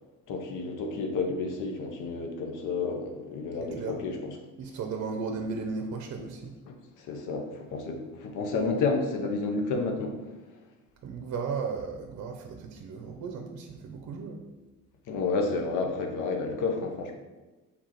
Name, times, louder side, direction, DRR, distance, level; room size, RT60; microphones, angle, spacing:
voice 1, 0.3-4.3 7.0-10.1 15.1-17.1, left 4 dB, 85° left, 3 dB, 0.7 m, -30 dB
voice 2, 3.6-4.0 4.6-6.5 11.0-14.4, right 5 dB, 60° right, 4 dB, 0.6 m, -35 dB
4.8 x 3.5 x 2.9 m, 1.2 s
cardioid pair, 90°, 30 cm